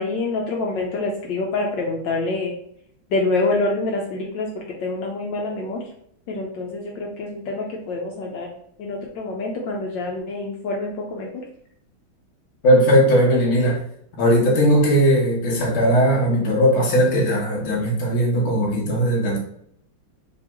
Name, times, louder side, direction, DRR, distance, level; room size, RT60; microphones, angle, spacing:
voice 1, 0.0-2.5 3.1-4.5 4.8-5.8 6.3-8.5 8.8-11.3, left 3 dB, 70° left, -1 dB, 1.3 m, -26 dB
voice 2, 12.6-13.8 14.2-19.4, equal, 45° left, -2 dB, 1.2 m, -18 dB
3.8 x 3.4 x 3.0 m, 0.68 s
omnidirectional pair, 2.2 m